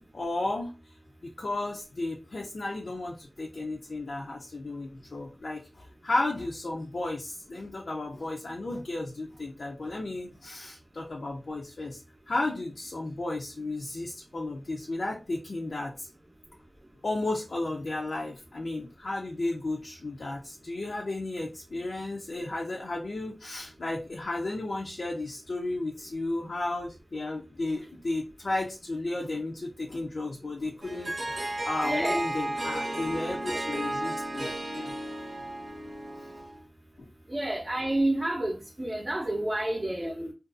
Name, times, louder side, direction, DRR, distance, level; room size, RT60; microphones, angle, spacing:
voice 1, 0.1-0.7 1.2-16.1 17.0-34.9 36.2-36.3 37.0-37.1, left 2 dB, 85° left, 0.4 m, -34 dB
Harp, 30.8-36.6, right 1 dB, 85° right, 0.8 m, -33 dB
voice 2, 31.8-32.2 37.3-40.3, right 1 dB, 30° right, 0.5 m, -29 dB
2.5 x 2.2 x 2.4 m
wide cardioid pair, 60°, 0 cm